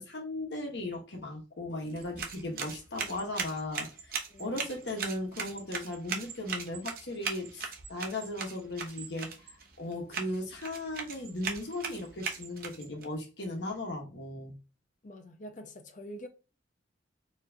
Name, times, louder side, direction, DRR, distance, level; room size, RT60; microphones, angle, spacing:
voice 1, 0.0-9.3 9.8-14.5, left 1 dB, 70° left, 1.3 m, -37 dB
sound 1, 1.9-13.0, right 6 dB, 50° right, 0.8 m, -39 dB
voice 2, 4.3-4.7 15.0-16.3, equal, 45° left, 0.7 m, -46 dB
4.4 x 3.2 x 2.8 m
head